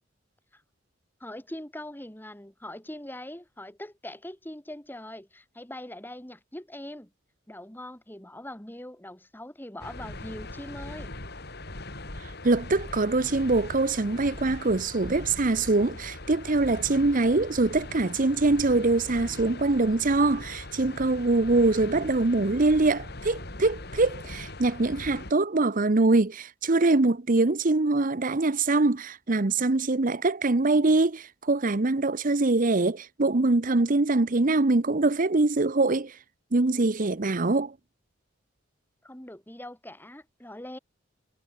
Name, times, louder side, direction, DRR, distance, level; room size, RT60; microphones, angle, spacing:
voice 1, 1.2-7.1 7.5-11.1 39.0-40.8, left 1 dB, 10° left, 2.5 m, -42 dB
sound 1, 9.8-25.3, left 2 dB, 55° left, 3.7 m, -40 dB
voice 2, 12.2-36.2 36.5-37.7, right 2 dB, 45° right, 0.9 m, -23 dB
head